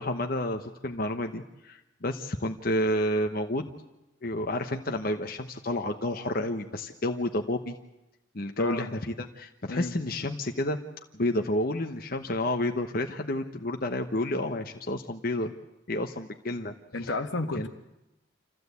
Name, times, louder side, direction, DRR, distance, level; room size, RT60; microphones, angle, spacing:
voice 1, 0.0-3.7 4.2-7.8 8.3-10.8 11.1-15.5 15.9-16.7 17.0-17.1 17.5-17.7, left 1 dB, 50° left, 5 dB, 1.0 m, -30 dB
voice 2, 8.6-9.0 9.7-9.9 16.9-17.7, left 2 dB, 80° left, 6 dB, 1.6 m, -32 dB
26.5 x 15.0 x 8.3 m, 0.97 s
head